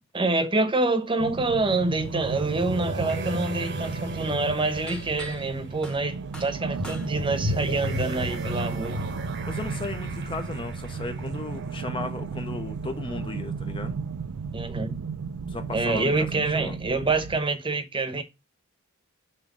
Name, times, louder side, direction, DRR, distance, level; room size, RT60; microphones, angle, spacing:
voice 1, 0.1-9.1 14.5-15.0 15.7-18.2, right 3 dB, 25° right, 1.0 m, -26 dB
sound 1, 1.2-17.4, right 5 dB, 80° right, 0.4 m, -34 dB
sound 2, 1.5-12.3, equal, 55° right, 1.1 m, -35 dB
sound 3, 2.0-2.5 2.8-7.1, right 1 dB, 5° left, 1.1 m, -44 dB
voice 2, 9.5-14.0 15.5-16.7, left 2 dB, 25° left, 0.7 m, -35 dB
7.6 x 3.2 x 6.0 m
head